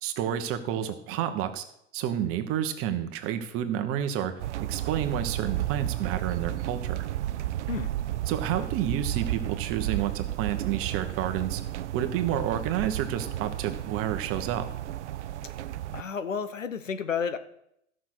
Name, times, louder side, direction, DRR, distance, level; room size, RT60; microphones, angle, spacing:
voice 1, 0.0-1.6 1.9-4.3 4.7-7.1 8.3-11.6 11.9-14.7, right 10 dB, 35° right, 8 dB, 1.3 m, -30 dB
sound 1, 4.4-16.0, right 13 dB, 65° right, 0.6 m, -32 dB
voice 2, 15.9-17.4, left 6 dB, 85° left, 11 dB, 1.1 m, -31 dB
13.5 x 6.4 x 6.2 m, 0.76 s
figure-of-eight pair, 100°, 37 cm